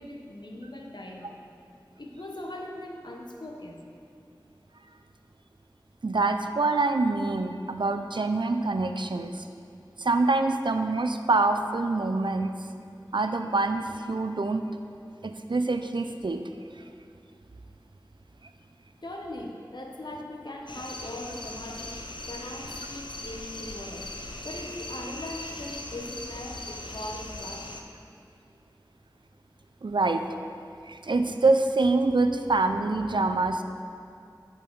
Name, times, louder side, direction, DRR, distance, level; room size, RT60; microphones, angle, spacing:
voice 1, 0.0-1.4 2.0-3.9 19.0-21.9 22.3-24.1 24.4-27.7, left 1 dB, 65° left, 0 dB, 1.0 m, -40 dB
voice 2, 6.0-9.4 10.0-12.5 13.1-14.6 15.2-16.4 29.8-30.2 30.9-33.6, right 3 dB, 85° right, 8 dB, 0.4 m, -25 dB
sound 1, 20.7-27.8, left 2 dB, 85° left, 0.6 m, -39 dB
10.5 x 5.2 x 4.6 m, 2.5 s
wide cardioid pair, 45°, 8 cm